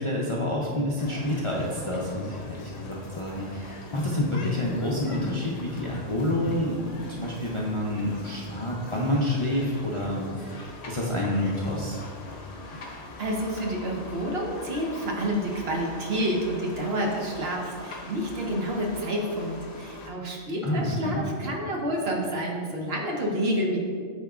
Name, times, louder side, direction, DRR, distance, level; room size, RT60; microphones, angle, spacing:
voice 1, 0.0-12.0 20.6-21.2, left 1 dB, 40° left, -4 dB, 0.5 m, -28 dB
sound 1, 1.0-20.1, left 2 dB, 85° left, 1.2 m, -43 dB
voice 2, 13.2-23.8, equal, 60° right, -1 dB, 1.1 m, -29 dB
9.5 x 4.4 x 2.4 m, 2.1 s
omnidirectional pair, 1.2 m